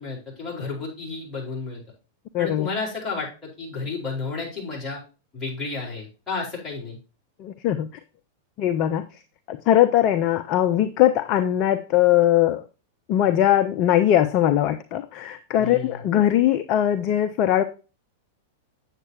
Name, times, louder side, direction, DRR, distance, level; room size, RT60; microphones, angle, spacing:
voice 1, 0.0-1.8 2.4-5.0 5.3-7.0 15.6-16.0, left 4 dB, 20° left, -4 dB, 4.5 m, -32 dB
voice 2, 2.3-2.7 7.4-7.9 8.6-9.0 9.5-12.6 13.1-17.6, left 12 dB, 40° left, 10 dB, 0.5 m, -20 dB
8.0 x 7.4 x 2.9 m, 0.33 s
figure-of-eight pair, 95°, 0 cm